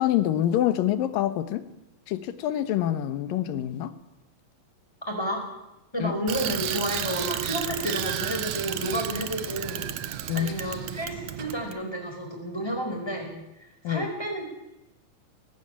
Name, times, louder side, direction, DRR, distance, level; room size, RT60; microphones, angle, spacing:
voice 1, 0.0-1.6 2.1-3.9 6.0-6.1 10.3-10.5 13.8-14.1, left 12 dB, 80° left, 13 dB, 2.9 m, -26 dB
voice 2, 5.1-5.5 5.9-13.3 13.9-14.4, equal, 5° left, 2 dB, 4.6 m, -31 dB
Bicycle, 6.3-11.8, right 11 dB, 65° right, 1.7 m, -32 dB
18.5 x 16.0 x 8.9 m, 0.90 s
omnidirectional pair, 3.9 m